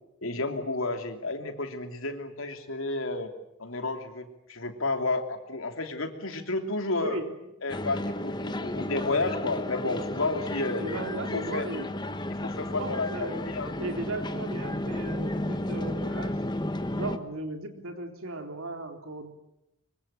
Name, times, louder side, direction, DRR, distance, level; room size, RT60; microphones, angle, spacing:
voice 1, 0.2-3.3 3.6-7.2 7.6-10.8 11.3-11.7 12.4-13.7, left 2 dB, 75° left, 6 dB, 3.1 m, -31 dB
voice 2, 7.0-7.5 10.8-11.9 12.8-13.5 13.8-16.4 17.0-19.3, right 2 dB, 75° right, 5 dB, 3.7 m, -36 dB
sound 1, 7.7-17.2, left 1 dB, 20° left, 1.2 m, -33 dB
24.5 x 23.5 x 9.1 m, 0.86 s
head